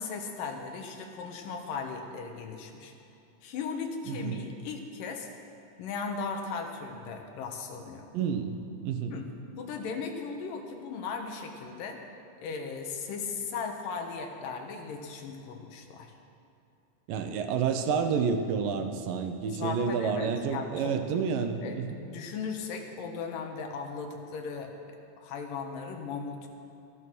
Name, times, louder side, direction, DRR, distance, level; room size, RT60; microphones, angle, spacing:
voice 1, 0.0-2.9 3.4-5.3 5.8-8.1 9.1-9.3 9.6-12.0 12.4-16.1 19.5-20.9 21.6-24.7 25.2-26.5, left 5 dB, 85° left, 4 dB, 2.9 m, -37 dB
voice 2, 4.1-4.4 8.1-8.6 8.8-9.1 17.1-22.0, right 6 dB, 90° right, 6 dB, 2.6 m, -29 dB
14.0 x 13.0 x 6.2 m, 2.7 s
omnidirectional pair, 3.8 m